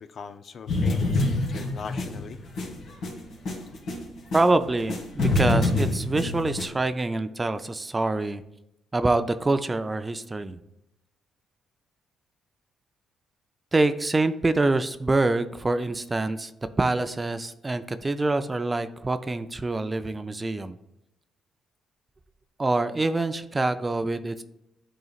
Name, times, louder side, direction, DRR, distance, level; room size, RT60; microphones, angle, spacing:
voice 1, 0.0-2.4, left 6 dB, 55° left, 10 dB, 0.5 m, -40 dB
sound 1, 0.7-4.5 4.8-6.7, left 2 dB, 75° left, 2.0 m, -26 dB
voice 2, 4.3-8.4 8.9-10.6 13.7-16.5 16.8-20.8 22.6-24.4, right 2 dB, 20° right, 11 dB, 0.4 m, -25 dB
11.0 x 3.9 x 2.4 m, 0.88 s
cardioid pair, 90°, 0 cm